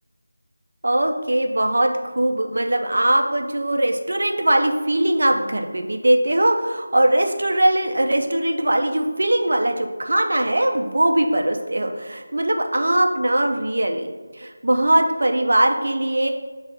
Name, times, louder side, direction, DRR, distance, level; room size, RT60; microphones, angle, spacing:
voice 1, 0.8-14.1 14.4-16.3, right 1 dB, 60° right, 3 dB, 0.7 m, -20 dB
7.1 x 3.2 x 4.1 m, 1.4 s
figure-of-eight pair, 165°, 0 cm